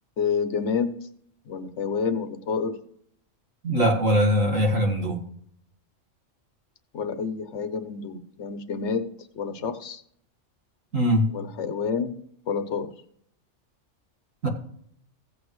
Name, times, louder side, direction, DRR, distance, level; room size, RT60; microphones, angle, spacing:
voice 1, 0.2-0.9 1.5-2.8 6.9-9.1 9.3-10.0 11.2-12.1 12.5-12.9, left 6 dB, 65° left, 10 dB, 1.1 m, -28 dB
voice 2, 3.6-5.2 10.9-11.3 14.4-14.5, equal, 80° right, 0 dB, 2.2 m, -21 dB
15.5 x 8.2 x 3.1 m, 0.66 s
omnidirectional pair, 1.3 m